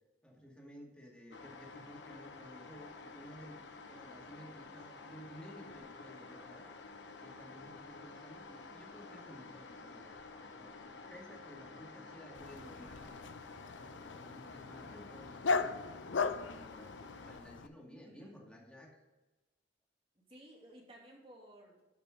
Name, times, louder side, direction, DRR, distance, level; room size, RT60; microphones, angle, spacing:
voice 1, 0.2-3.6 3.9-6.7 7.2-10.1 10.4-13.2 13.7-15.7 16.1-19.0, equal, 5° left, -2 dB, 2.3 m, -54 dB
sound 1, 1.3-17.4, left 3 dB, 70° left, 1.0 m, -51 dB
voice 2, 7.1-7.4 18.0-18.3 20.2-21.8, right 1 dB, 30° right, -2 dB, 2.6 m, -57 dB
Dog, 12.3-17.7, left 4 dB, 90° left, 0.6 m, -38 dB
12.5 x 5.2 x 5.1 m, 1.1 s
head